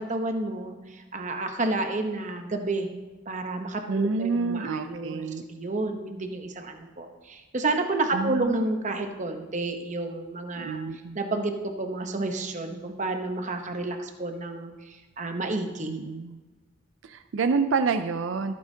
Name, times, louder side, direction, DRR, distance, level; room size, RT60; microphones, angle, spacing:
voice 1, 0.0-2.9 3.3-5.2 5.5-10.8 11.1-15.9, right 2 dB, 35° right, 5 dB, 0.9 m, -30 dB
voice 2, 3.9-5.4 8.1-8.6 10.5-11.2 15.9-16.4 17.0-18.6, right 4 dB, 65° right, 9 dB, 0.4 m, -28 dB
15.0 x 8.6 x 2.8 m, 1.2 s
head